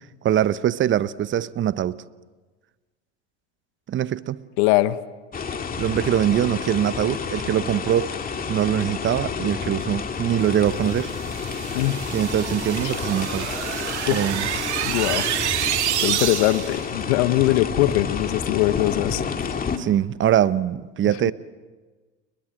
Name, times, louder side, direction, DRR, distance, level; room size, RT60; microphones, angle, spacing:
voice 1, 0.2-2.0 3.9-4.4 5.8-8.1 8.5-11.1 12.1-13.5 14.1-14.5 19.8-21.3, right 11 dB, 35° right, 0.9 m, -23 dB
voice 2, 4.6-5.0 11.7-12.0 12.8-12.9 14.1-14.3 14.8-15.3 16.0-19.5 21.2-21.3, left 17 dB, 65° left, 1.3 m, -22 dB
sound 1, 5.3-19.8, left 6 dB, 25° left, 2.2 m, -30 dB
sound 2, 10.9-16.9, right 12 dB, 85° right, 1.7 m, -28 dB
30.0 x 22.5 x 7.7 m
hypercardioid pair, 90°, 34 cm